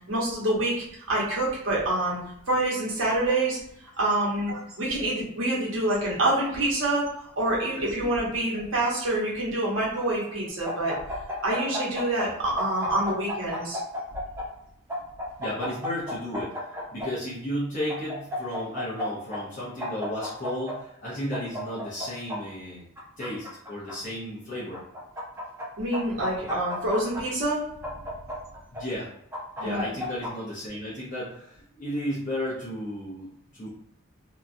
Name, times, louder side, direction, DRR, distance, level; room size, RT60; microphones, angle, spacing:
voice 1, 0.1-2.2 2.5-3.6 4.0-7.1 7.4-10.9 11.4-13.8 25.8-27.6 29.6-29.9, right 1 dB, 70° right, -5 dB, 1.1 m, -26 dB
sound 1, 10.6-12.3 12.6-14.4 14.9-17.1 17.9-19.0 19.3-19.4 19.8-20.7 21.3-22.4 23.0-23.9 24.7-25.6 25.9-27.2 27.8-28.8 29.3-30.3, left 1 dB, 15° right, 0.8 m, -33 dB
voice 2, 15.4-22.9 23.2-24.8 28.7-29.1 29.6-33.7, equal, 40° left, -8 dB, 0.8 m, -34 dB
2.9 x 2.3 x 2.6 m, 0.74 s
head